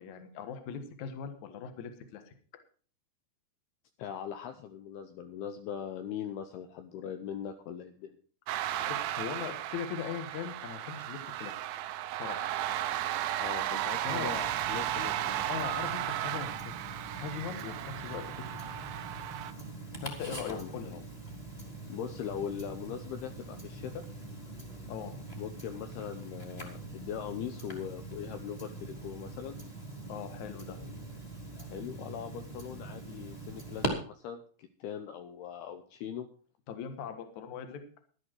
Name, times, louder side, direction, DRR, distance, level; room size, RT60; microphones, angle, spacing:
voice 1, 0.0-2.3 8.6-11.5 12.1-12.5 14.0-14.3 15.5-16.7 17.2-18.6 20.0-21.0 24.9-25.1 30.1-30.8 36.7-37.8, left 7 dB, 55° left, 7 dB, 2.3 m, -40 dB
voice 2, 4.0-8.2 13.4-15.4 20.5-21.0 21.9-24.0 25.4-29.6 31.6-36.3, left 8 dB, 75° left, 7 dB, 2.6 m, -40 dB
sound 1, 8.5-19.5, right 13 dB, 85° right, 2.0 m, -35 dB
Tick-tock, 14.1-33.9, right 2 dB, 15° left, 1.6 m, -43 dB
13.0 x 11.5 x 4.7 m, 0.43 s
omnidirectional pair, 5.0 m